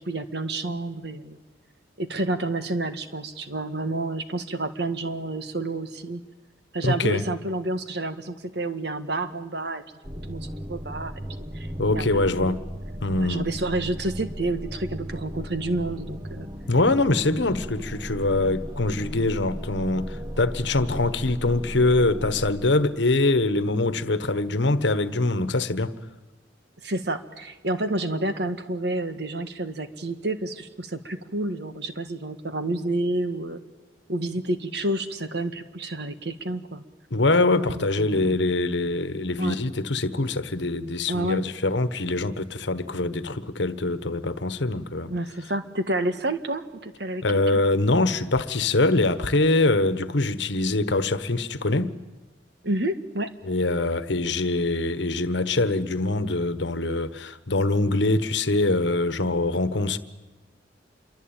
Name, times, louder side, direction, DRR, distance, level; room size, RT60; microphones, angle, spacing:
voice 1, 0.1-1.4 2.0-6.2 6.7-9.8 10.3-11.1 11.5-12.6 13.1-16.5 26.8-33.6 34.1-36.8 37.7-38.4 39.4-39.6 41.1-41.4 45.1-47.2 47.5-47.6 52.6-53.3, right 2 dB, 60° right, 1.7 m, -29 dB
voice 2, 6.8-7.2 11.8-12.6 13.0-13.5 16.7-25.9 37.1-45.1 47.2-52.0 53.4-60.0, left 2 dB, 70° left, 1.3 m, -24 dB
sound 1, 10.0-22.5, equal, 20° right, 1.2 m, -36 dB
27.0 x 23.0 x 9.0 m
head